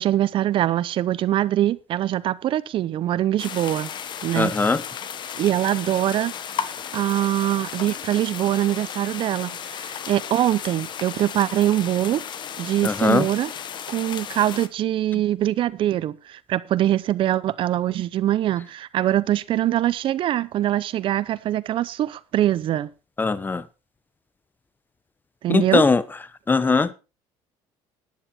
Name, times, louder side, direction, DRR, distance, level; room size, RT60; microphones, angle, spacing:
voice 1, 0.0-3.9 4.2-4.5 5.3-6.3 6.9-12.2 12.6-13.5 13.9-22.9 25.4-25.8, right 12 dB, 55° right, 0.7 m, -23 dB
sound 1, 3.4-14.7, left 8 dB, 45° left, 1.2 m, -34 dB
voice 2, 4.3-4.8 12.8-13.3 15.1-15.2 23.2-23.6 25.5-26.0 26.5-26.9, left 4 dB, 20° left, 1.0 m, -20 dB
12.0 x 10.5 x 4.4 m
cardioid pair, 110°, 11 cm